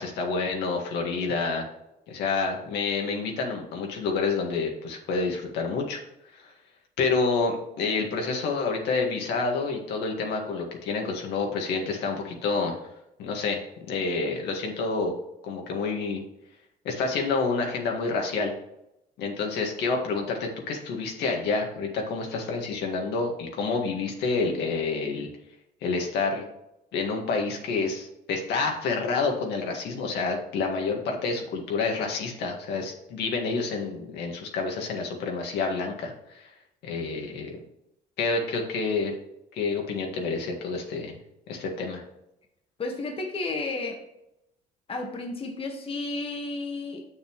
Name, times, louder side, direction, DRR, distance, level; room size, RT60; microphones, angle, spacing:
voice 1, 0.0-1.6 2.1-6.0 6.3-6.5 7.0-12.8 13.2-13.6 13.9-15.1 15.4-16.2 16.8-18.5 19.2-25.3 25.8-26.4 26.9-36.5 36.8-37.5 38.2-39.1 39.5-41.2 41.5-42.0, left 4 dB, 80° left, 1 dB, 1.7 m, -28 dB
voice 2, 42.8-44.1 44.9-47.0, left 3 dB, 35° left, 3 dB, 1.3 m, -32 dB
6.8 x 6.7 x 3.1 m, 0.84 s
cardioid pair, 110°, 17 cm